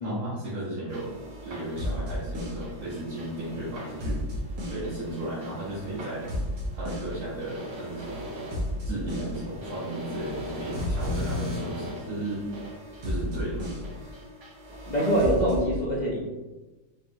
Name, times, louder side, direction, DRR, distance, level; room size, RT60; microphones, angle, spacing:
voice 1, 0.0-1.1 1.4-4.3 4.7-6.3 6.7-8.3 8.8-12.5 13.0-13.6, right 1 dB, 60° right, -8 dB, 1.6 m, -35 dB
sound 1, 0.9-15.6, left 1 dB, 90° right, 1.9 m, -34 dB
voice 2, 14.8-16.2, right 1 dB, 60° left, -5 dB, 0.4 m, -24 dB
5.2 x 3.3 x 2.7 m, 1.1 s
omnidirectional pair, 1.9 m